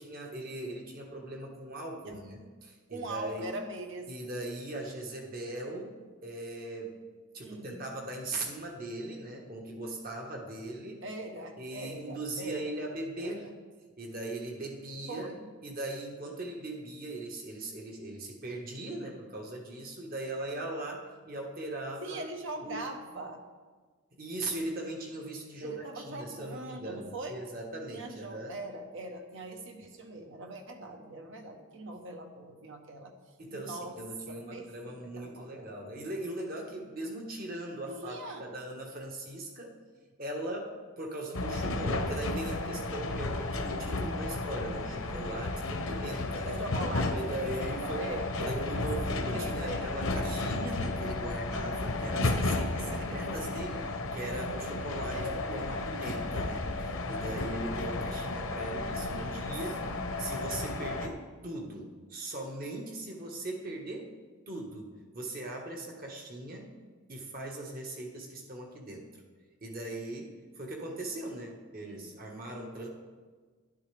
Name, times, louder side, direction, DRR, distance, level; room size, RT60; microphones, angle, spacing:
voice 1, 0.0-3.5 4.1-6.0 6.2-7.0 7.3-11.0 11.6-13.5 14.0-15.3 15.6-22.2 22.6-22.9 24.2-28.6 33.4-39.8 40.2-46.6 47.1-48.0 48.4-59.8 60.2-64.1 64.5-66.7 67.1-69.1 69.6-72.9, right 2 dB, 40° right, 1 dB, 1.4 m, -39 dB
voice 2, 2.9-4.3 7.4-7.8 11.0-12.7 13.2-13.5 15.1-15.4 22.0-23.4 25.6-27.4 27.9-33.1 33.5-33.9 34.3-35.8 37.9-38.5 46.4-49.9 52.1-53.9 55.1-55.9 59.1-59.9 71.8-72.2, right 2 dB, 55° right, 5 dB, 1.1 m, -42 dB
sound 1, 41.3-61.1, left 2 dB, 70° left, 0.9 m, -33 dB
12.0 x 11.0 x 3.4 m, 1.4 s
head